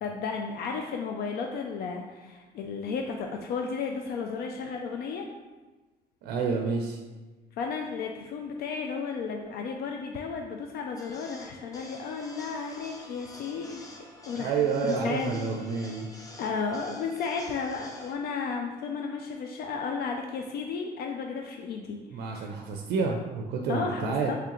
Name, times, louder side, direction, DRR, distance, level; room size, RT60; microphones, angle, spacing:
voice 1, 0.0-5.3 7.6-14.5 14.8-15.3 16.4-22.5 23.7-24.4, left 5 dB, 65° left, 2 dB, 0.4 m, -33 dB
voice 2, 6.2-7.0 14.4-16.1 22.1-24.3, right 5 dB, 75° right, 2 dB, 0.4 m, -29 dB
sound 1, 11.0-18.1, left 2 dB, 20° left, 0.6 m, -48 dB
3.7 x 3.2 x 3.0 m, 1.2 s
cardioid pair, 110°, 17 cm